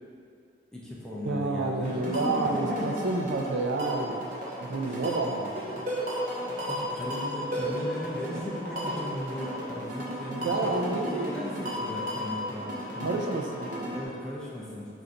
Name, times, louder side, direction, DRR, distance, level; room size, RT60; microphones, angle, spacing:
voice 1, 0.7-3.0 4.9-5.0 6.7-13.2 13.9-15.0, left 1 dB, 5° left, -6 dB, 0.5 m, -37 dB
voice 2, 1.2-4.3 4.6-5.9 10.3-11.5 13.0-14.0, right 3 dB, 85° right, 2 dB, 0.4 m, -30 dB
sound 1, 1.8-14.1, equal, 45° right, 0.7 m, -35 dB
3.8 x 2.6 x 4.3 m, 2.5 s
head